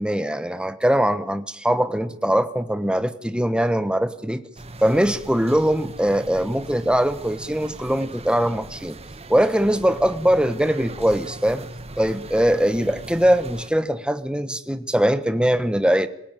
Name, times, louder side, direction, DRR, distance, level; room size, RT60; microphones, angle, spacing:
voice 1, 0.0-4.4 4.8-9.0 9.3-11.7 12.0-16.1, equal, 5° right, 11 dB, 1.3 m, -21 dB
sound 1, 4.6-13.7, right 2 dB, 30° right, 1.3 m, -39 dB
25.5 x 17.5 x 9.1 m, 0.75 s
head